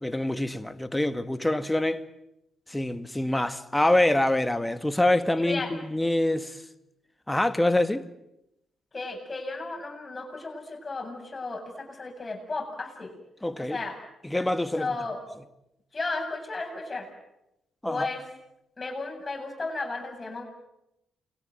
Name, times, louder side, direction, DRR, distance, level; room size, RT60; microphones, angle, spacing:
voice 1, 0.0-2.0 2.7-6.6 7.3-8.1 13.4-13.8 14.2-15.0 17.8-18.1, left 1 dB, 10° left, 2.1 m, -25 dB
voice 2, 5.4-5.7 8.9-13.1 13.6-14.0 14.8-15.2 15.9-17.1 17.9-18.2 18.8-20.4, left 3 dB, 35° left, 7.7 m, -34 dB
29.0 x 22.0 x 9.3 m
hypercardioid pair, 45°, 0 cm